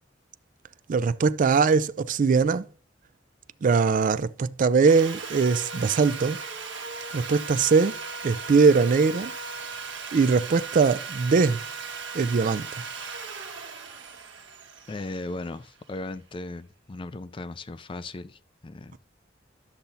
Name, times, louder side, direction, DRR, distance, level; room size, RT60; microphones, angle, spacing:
voice 1, 0.9-2.6 3.6-6.4 7.1-8.0 8.2-9.3 10.1-11.6 12.1-12.7, right 5 dB, 45° right, 0.4 m, -21 dB
Sawing, 4.8-15.9, right 5 dB, 70° right, 1.3 m, -37 dB
voice 2, 14.9-19.0, left 2 dB, 25° left, 0.4 m, -37 dB
12.0 x 6.8 x 2.7 m
head